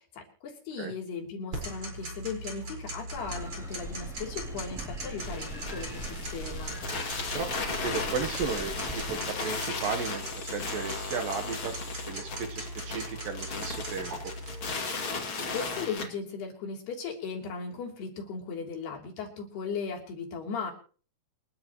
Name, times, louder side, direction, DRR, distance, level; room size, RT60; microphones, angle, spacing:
voice 1, 0.0-6.8 15.5-20.7, left 5 dB, 70° left, 1 dB, 5.3 m, -37 dB
Tick-tock, 1.5-14.7, right 1 dB, 30° right, 5.5 m, -40 dB
sound 1, 3.1-9.3, right 1 dB, ahead, 2.3 m, -42 dB
sound 2, 5.2-16.0, left 4 dB, 35° left, 2.7 m, -36 dB
voice 2, 7.3-11.7 12.1-14.3, right 5 dB, 65° right, 5 dB, 2.6 m, -35 dB
28.0 x 12.5 x 3.1 m, 0.41 s
omnidirectional pair, 4.8 m